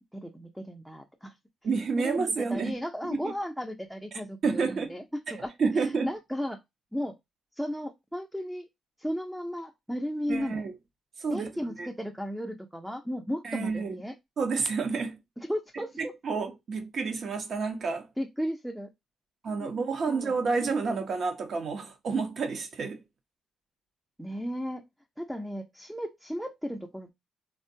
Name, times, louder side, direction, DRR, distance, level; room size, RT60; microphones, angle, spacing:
voice 1, 0.1-1.3 2.0-6.6 6.9-7.1 7.6-8.7 9.0-10.6 11.3-14.1 15.4-16.1 18.2-18.9 19.5-19.7 20.1-20.4 24.2-24.8 25.2-27.1, equal, ahead, 0.4 m, -35 dB
voice 2, 1.6-2.8 3.1-3.3 4.4-4.9 5.3-6.1 10.3-10.7 11.2-11.5 11.8-11.9 13.4-14.0 14.4-15.2 15.7-18.1 19.4-23.0, right 4 dB, 55° right, 0.8 m, -30 dB
3.5 x 2.2 x 2.6 m
cardioid pair, 90°, 0 cm